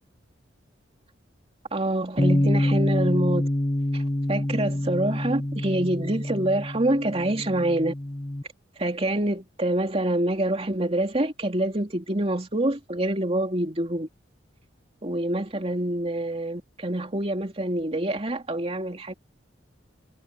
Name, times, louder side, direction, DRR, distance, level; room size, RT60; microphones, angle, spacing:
voice 1, 1.7-3.5 3.9-4.0 4.3-7.9 8.8-14.1 15.0-19.1, right 1 dB, 30° right, 2.9 m, -26 dB
Bass guitar, 2.2-8.4, left 1 dB, 25° left, 1.2 m, -26 dB
head